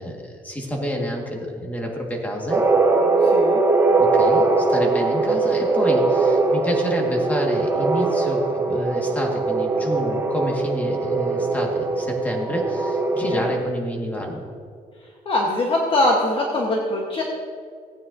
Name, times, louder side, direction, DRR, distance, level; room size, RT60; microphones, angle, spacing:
voice 1, 0.0-2.6 4.0-14.4, equal, 10° left, 0 dB, 1.8 m, -28 dB
sound 1, 2.5-13.6, right 3 dB, 15° right, 1.0 m, -21 dB
voice 2, 3.2-3.6 13.2-13.4 15.2-17.2, left 1 dB, 35° left, -1 dB, 1.3 m, -22 dB
17.5 x 9.3 x 2.7 m, 2.2 s
cardioid pair, 135°, 16 cm